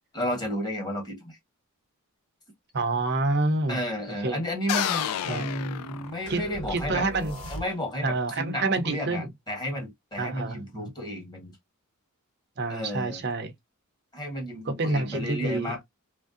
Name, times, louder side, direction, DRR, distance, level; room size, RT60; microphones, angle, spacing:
voice 1, 0.1-1.4 3.7-7.1 7.5-11.6 12.7-13.2 14.1-15.8, equal, 20° left, 1.2 m, -32 dB
voice 2, 2.7-3.8 4.2-4.4 5.3-5.5 6.3-6.4 6.7-7.4 8.0-9.3 10.2-10.9 12.6-13.5 14.7-15.8, right 2 dB, 50° right, 0.6 m, -27 dB
sound 1, 4.7-6.6, left 10 dB, 90° left, 0.3 m, -30 dB
sound 2, 6.3-8.1, equal, 70° left, 1.2 m, -38 dB
3.0 x 2.6 x 2.4 m
head